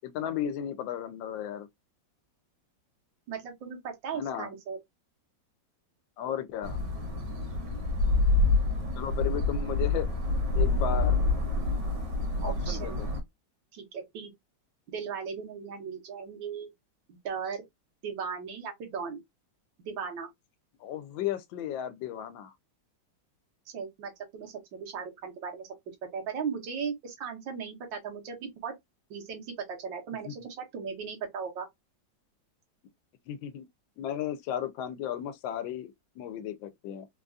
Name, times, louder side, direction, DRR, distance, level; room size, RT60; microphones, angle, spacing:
voice 1, 0.0-1.7 4.1-4.5 6.2-6.8 9.0-10.1 10.6-11.2 12.4-13.1 20.8-22.5 30.2-30.5 33.3-33.7 34.0-37.1, left 10 dB, 85° left, 1.3 m, -34 dB
voice 2, 3.3-4.8 12.4-13.0 13.7-14.3 14.9-16.7 17.1-17.6 18.0-19.2 19.9-20.3 23.7-25.7 26.1-28.7 29.1-29.5 29.8-31.7, right 6 dB, 85° right, 1.7 m, -37 dB
sound 1, 6.6-13.2, left 2 dB, 70° right, 1.7 m, -27 dB
3.9 x 2.3 x 2.5 m
omnidirectional pair, 2.0 m